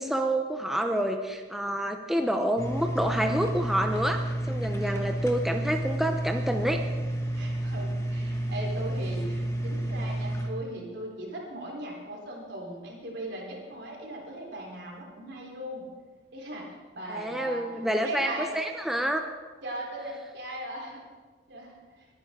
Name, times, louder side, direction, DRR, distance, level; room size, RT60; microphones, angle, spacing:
voice 1, 0.0-6.8 17.1-19.3, right 1 dB, ahead, 3 dB, 0.6 m, -28 dB
sound 1, 2.6-10.5, right 1 dB, 15° left, 1.3 m, -30 dB
voice 2, 4.8-5.1 7.3-15.9 16.3-18.5 19.6-21.0 21.5-22.1, right 1 dB, 70° right, -2 dB, 3.7 m, -38 dB
21.5 x 10.0 x 3.7 m, 1.4 s
head